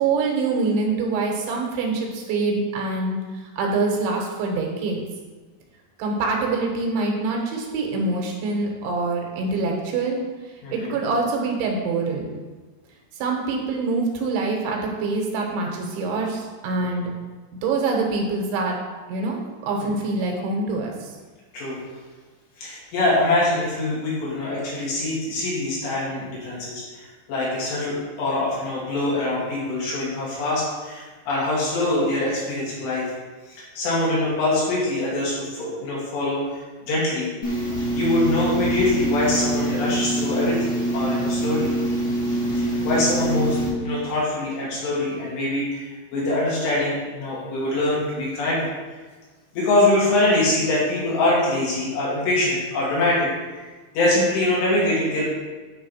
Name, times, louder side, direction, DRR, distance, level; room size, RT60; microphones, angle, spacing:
voice 1, 0.0-5.0 6.0-10.2 10.7-12.3 13.1-17.1 17.6-18.8 19.1-21.1, right 3 dB, 80° right, 0 dB, 3.6 m, -25 dB
voice 2, 22.6-33.1 33.5-37.5 37.9-41.7 42.6-48.7 49.5-53.3 53.5-53.6 53.9-55.2, left 2 dB, 70° left, -7 dB, 4.5 m, -24 dB
sound 1, 37.4-43.7, right 1 dB, 50° left, 1.2 m, -24 dB
10.0 x 3.7 x 5.7 m, 1.3 s
omnidirectional pair, 5.2 m